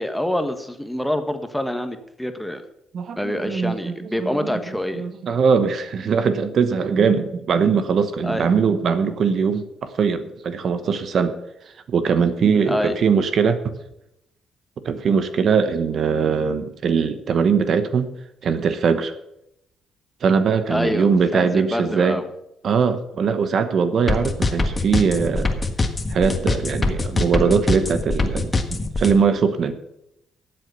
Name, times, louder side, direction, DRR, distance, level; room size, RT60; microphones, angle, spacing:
voice 1, 0.0-2.6 3.2-5.0 8.2-8.5 12.7-13.0 20.7-22.3, left 1 dB, 5° left, 7 dB, 1.3 m, -26 dB
voice 2, 2.9-11.4 11.9-13.7 14.8-18.1 18.4-19.1 20.2-22.2 22.6-25.6 26.1-29.7, right 6 dB, 60° right, 11 dB, 1.0 m, -21 dB
sound 1, 24.1-29.1, left 3 dB, 25° left, 1.5 m, -22 dB
12.0 x 7.9 x 6.9 m, 0.82 s
cardioid pair, 90°, 0 cm